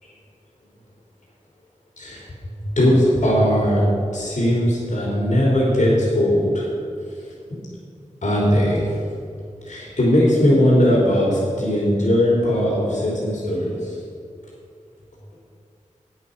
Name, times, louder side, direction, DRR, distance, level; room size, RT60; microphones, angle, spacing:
voice 1, 2.0-3.8 4.1-6.6 8.2-8.9 9.6-14.0, equal, 70° left, -5 dB, 3.4 m, -19 dB
9.8 x 9.7 x 6.7 m, 2.3 s
wide cardioid pair, 75°, 13 cm